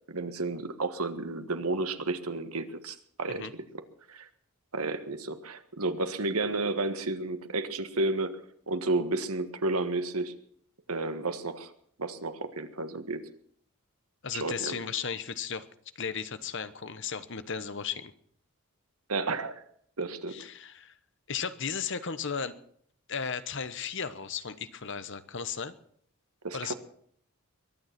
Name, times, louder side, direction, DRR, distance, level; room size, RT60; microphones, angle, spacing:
voice 1, 0.1-3.5 4.1-4.3 4.7-8.4 8.7-10.4 10.9-11.7 12.0-13.2 14.3-14.8 19.1-19.6 20.0-20.4 26.4-26.7, right 2 dB, 80° right, 10 dB, 1.6 m, -32 dB
voice 2, 14.2-15.7 15.9-18.1 20.3-20.9 21.3-22.5 23.1-25.7 26.5-26.7, left 6 dB, 55° left, 13 dB, 1.1 m, -35 dB
22.5 x 9.6 x 5.9 m, 0.62 s
head